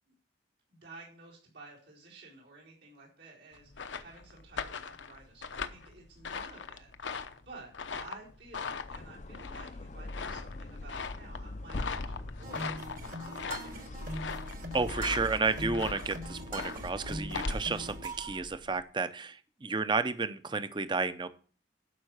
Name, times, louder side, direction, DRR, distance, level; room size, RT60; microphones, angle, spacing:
voice 1, 0.7-7.7 8.0-14.0, right 3 dB, 80° right, -5 dB, 4.5 m, -53 dB
sound 1, 3.5-18.8, left 5 dB, 80° left, 0.8 m, -40 dB
sound 2, 8.7-18.2, left 2 dB, 40° left, 0.5 m, -43 dB
sound 3, 12.4-18.4, right 2 dB, 45° right, 1.5 m, -42 dB
voice 2, 14.7-21.3, right 4 dB, 25° right, 12 dB, 0.6 m, -32 dB
12.0 x 5.6 x 6.4 m, 0.41 s
head